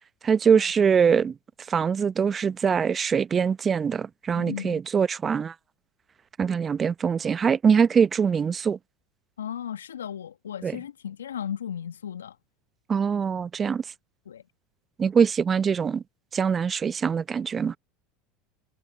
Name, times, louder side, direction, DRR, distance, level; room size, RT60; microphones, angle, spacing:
voice 1, 0.2-1.3 1.7-5.5 6.4-8.8 10.6-10.8 12.9-13.8 15.0-16.0 16.3-17.8, right 6 dB, 30° right, 0.9 m, -23 dB
voice 2, 4.3-4.8 9.4-12.4 14.2-14.4, left 9 dB, 80° left, 1.4 m, -36 dB
hypercardioid pair, 75°, 0 cm